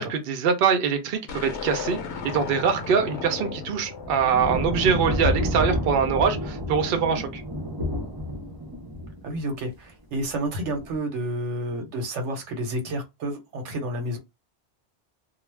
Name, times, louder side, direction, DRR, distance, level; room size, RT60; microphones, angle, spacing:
voice 1, 0.0-2.0 2.2-7.4, right 6 dB, 60° right, 0.7 m, -23 dB
sound 1, 1.3-5.7, left 5 dB, 75° left, 0.9 m, -36 dB
sound 2, 4.0-9.5 10.7-11.0, equal, 30° right, 0.5 m, -29 dB
voice 2, 9.2-14.2, right 1 dB, 85° right, 1.1 m, -30 dB
2.3 x 2.1 x 3.1 m
omnidirectional pair, 1.2 m